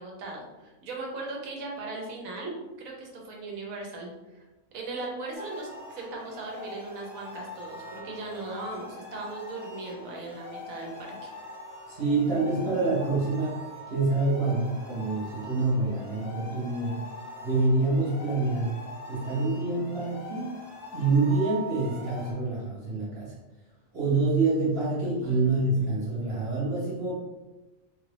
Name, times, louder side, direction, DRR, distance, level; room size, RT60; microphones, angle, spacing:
voice 1, 0.0-4.5 4.7-11.3 25.2-26.0, right 3 dB, 80° right, -1 dB, 1.2 m, -38 dB
sound 1, 5.3-22.3, left 1 dB, 15° right, 0.9 m, -43 dB
voice 2, 11.9-13.6 13.9-17.0 17.4-18.7 19.1-20.6 20.9-23.3 23.9-27.2, right 3 dB, 50° right, -7 dB, 1.1 m, -26 dB
3.6 x 2.4 x 3.3 m, 1.1 s
omnidirectional pair, 1.4 m